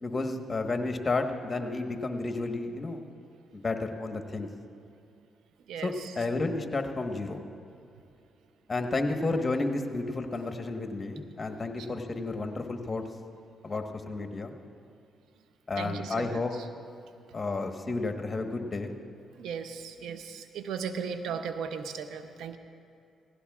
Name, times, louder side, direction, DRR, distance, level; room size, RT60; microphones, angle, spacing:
voice 1, 0.0-3.0 3.5-4.5 5.8-7.4 8.7-13.1 13.6-14.5 15.7-16.5 17.3-18.9, left 3 dB, 30° left, 4 dB, 1.3 m, -31 dB
voice 2, 5.7-6.1 11.8-11.9 15.8-16.7 19.4-22.6, right 6 dB, 80° right, 9 dB, 0.6 m, -37 dB
17.0 x 16.0 x 2.4 m, 2.7 s
supercardioid pair, 65°, 0 cm